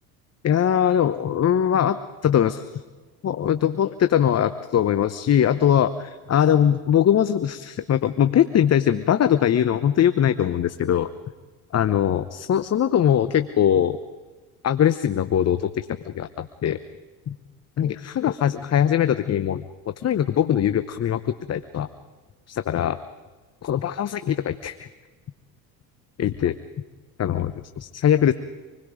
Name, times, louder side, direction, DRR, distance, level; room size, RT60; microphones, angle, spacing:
voice 1, 0.4-2.0 2.2-2.8 3.2-11.1 11.7-14.0 14.6-16.8 17.3-17.4 17.8-19.6 20.0-21.9 22.5-23.0 23.6-24.9 26.2-26.6 27.2-28.3, left 9 dB, 35° left, 11 dB, 0.9 m, -21 dB
26.5 x 21.0 x 5.1 m, 1.3 s
hypercardioid pair, 75°, 46 cm